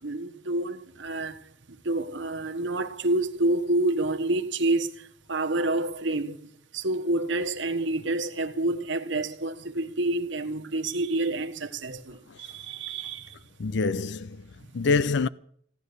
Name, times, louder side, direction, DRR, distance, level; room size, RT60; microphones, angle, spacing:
voice 1, 0.0-13.4 14.6-14.7, right 2 dB, 75° right, 1.3 m, -28 dB
voice 2, 13.6-14.4 14.7-15.3, left 4 dB, 65° left, 0.5 m, -25 dB
16.5 x 11.0 x 6.7 m
head